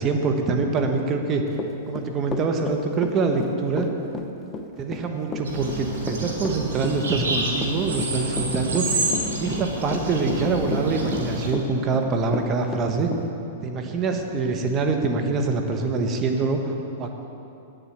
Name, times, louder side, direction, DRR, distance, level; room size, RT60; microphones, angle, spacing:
voice 1, 0.0-1.4 1.9-3.9 4.8-9.0 9.4-13.1 13.6-17.2, right 4 dB, 30° right, 3 dB, 1.3 m, -25 dB
Run / Walk footsteps, 1.5-13.3, left 3 dB, 20° left, 0.8 m, -32 dB
sound 1, 5.4-11.5, right 2 dB, 85° right, 2.0 m, -29 dB
8.7 x 7.6 x 8.3 m, 2.8 s
hypercardioid pair, 120°, 0 cm